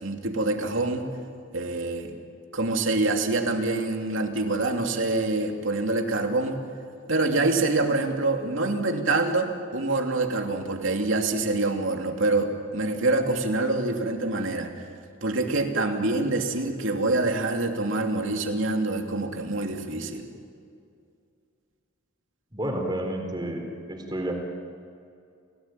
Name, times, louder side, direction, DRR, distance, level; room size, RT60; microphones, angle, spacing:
voice 1, 0.0-1.1 1.5-2.1 2.5-6.6 7.1-14.9 15.2-20.3, right 2 dB, 65° right, 3 dB, 2.9 m, -26 dB
voice 2, 22.5-23.6 23.9-24.4, right 1 dB, 20° right, 2 dB, 4.1 m, -30 dB
29.0 x 18.0 x 9.2 m, 2.4 s
head